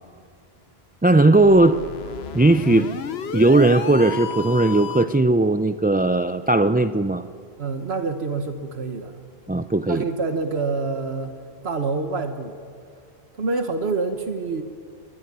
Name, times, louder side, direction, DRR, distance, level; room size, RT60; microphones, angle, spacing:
voice 1, 1.0-1.8 2.3-2.9 3.3-7.3 9.5-10.0, right 2 dB, 15° right, 9 dB, 0.4 m, -17 dB
sound 1, 1.3-5.2, left 7 dB, 75° left, 1.1 m, -33 dB
voice 2, 7.6-9.2 9.9-11.4 11.6-12.6 13.4-14.6, right 4 dB, 75° right, 6 dB, 1.5 m, -26 dB
21.5 x 21.5 x 9.6 m, 2.2 s
omnidirectional pair, 1.1 m